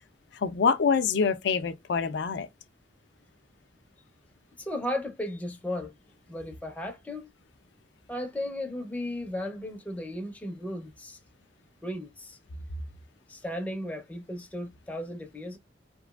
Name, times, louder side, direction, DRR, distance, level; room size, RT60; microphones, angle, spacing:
voice 1, 0.3-2.5, left 5 dB, 70° left, 0.4 m, -25 dB
voice 2, 4.6-5.9 6.3-7.3 8.1-11.2 11.8-12.4 13.3-15.6, left 1 dB, 10° left, 0.5 m, -35 dB
2.9 x 2.4 x 2.2 m
head